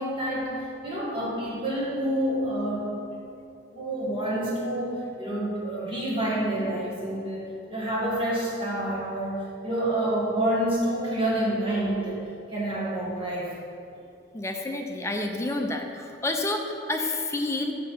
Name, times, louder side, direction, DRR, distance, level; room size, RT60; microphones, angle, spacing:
voice 1, 0.0-2.9 3.7-9.4 9.6-12.2 12.5-13.6, right 1 dB, 30° right, -6 dB, 2.0 m, -28 dB
voice 2, 14.3-15.8 16.2-17.7, left 2 dB, 15° left, 3 dB, 0.6 m, -29 dB
6.7 x 6.6 x 5.4 m, 2.6 s
head